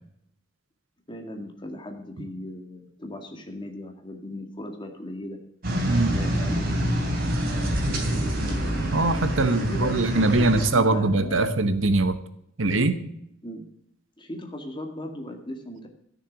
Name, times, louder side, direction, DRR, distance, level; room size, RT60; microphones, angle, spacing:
voice 1, 1.1-5.4 6.1-7.9 9.4-11.6 13.4-13.7 14.2-15.9, left 1 dB, 25° left, 4 dB, 1.9 m, -37 dB
sound 1, 5.6-10.7, equal, 50° right, 3.2 m, -26 dB
voice 2, 5.8-6.2 8.9-12.2 12.6-13.0, right 2 dB, 85° right, 11 dB, 1.1 m, -22 dB
13.0 x 6.7 x 7.2 m, 0.76 s
head